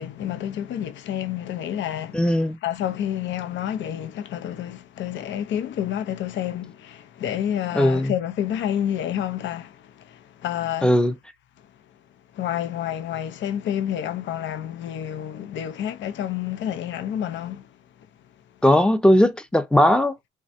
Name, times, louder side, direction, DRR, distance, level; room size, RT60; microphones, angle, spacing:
voice 1, 0.0-11.0 12.3-17.7, left 10 dB, 70° left, 0.5 m, -29 dB
voice 2, 2.1-2.6 7.7-8.1 10.8-11.1 18.6-20.2, left 1 dB, 5° left, 0.5 m, -18 dB
3.3 x 2.2 x 2.6 m
cardioid pair, 90°, 20 cm